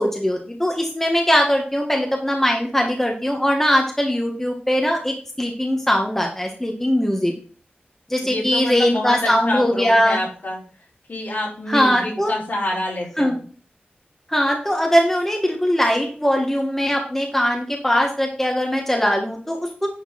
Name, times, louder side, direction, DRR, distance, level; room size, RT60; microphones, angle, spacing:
voice 1, 0.0-7.3 8.1-10.2 11.7-12.3 13.2-13.4 14.3-19.9, equal, 10° left, 1 dB, 1.8 m, -20 dB
voice 2, 8.2-10.6 11.1-13.4, left 1 dB, 60° left, -5 dB, 4.8 m, -27 dB
10.0 x 4.4 x 5.9 m, 0.42 s
wide cardioid pair, 80°, 4 cm